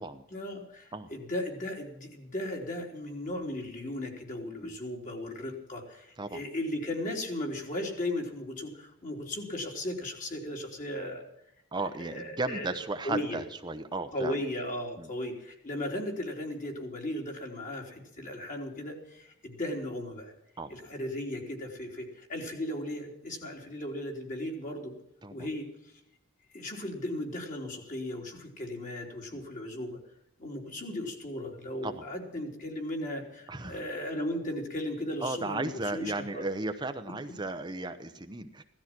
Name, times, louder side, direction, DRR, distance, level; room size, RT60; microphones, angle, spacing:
voice 1, 0.3-11.3 12.0-12.7 13.0-13.4 14.1-20.3 20.7-24.9 25.3-25.7 26.5-30.0 30.4-36.5, left 1 dB, 40° left, 1 dB, 3.6 m, -36 dB
voice 2, 11.7-14.3 15.0-15.1 20.6-20.7 25.2-25.5 29.3-29.4 31.8-32.0 33.5-33.8 35.2-38.6, right 2 dB, 20° right, 7 dB, 0.8 m, -35 dB
17.0 x 13.0 x 6.1 m, 0.81 s
head